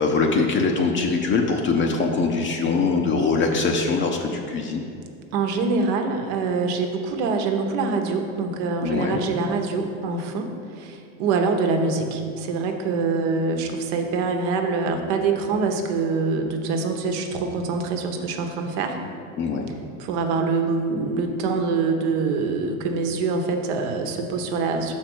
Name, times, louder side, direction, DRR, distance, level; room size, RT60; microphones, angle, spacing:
voice 1, 0.0-4.8 8.8-9.2 19.4-19.7, left 4 dB, 35° left, 2 dB, 0.7 m, -22 dB
voice 2, 5.3-10.5 10.8-19.0 20.0-24.9, right 4 dB, 70° right, 4 dB, 1.0 m, -25 dB
6.0 x 4.5 x 6.2 m, 2.5 s
supercardioid pair, 105°, 36 cm